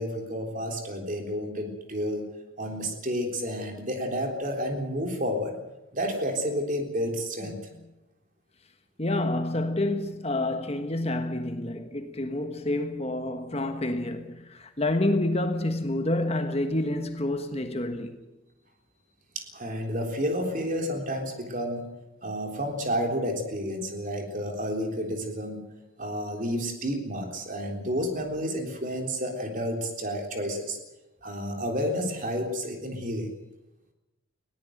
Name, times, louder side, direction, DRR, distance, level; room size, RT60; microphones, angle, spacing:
voice 1, 0.0-2.3 2.6-5.6 5.9-7.6 19.4-21.8 22.2-25.6 26.0-30.8 31.2-33.3, equal, 40° right, 3.6 m, -30 dB
voice 2, 9.0-18.2, left 1 dB, 30° left, 1.4 m, -28 dB
20.5 x 17.5 x 7.9 m
head